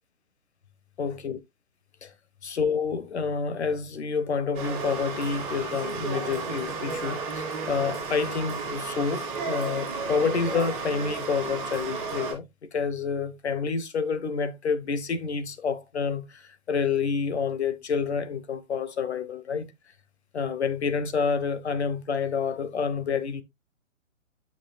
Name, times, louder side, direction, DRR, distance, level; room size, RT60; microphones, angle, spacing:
voice 1, 1.0-1.4 2.0-2.1 2.4-12.5 12.7-19.7 20.3-23.4, left 5 dB, 50° left, 1.1 m, -28 dB
sound 1, 4.5-12.3, right 4 dB, 15° right, 2.3 m, -33 dB
9.9 x 5.9 x 2.3 m
figure-of-eight pair, 130°, 41 cm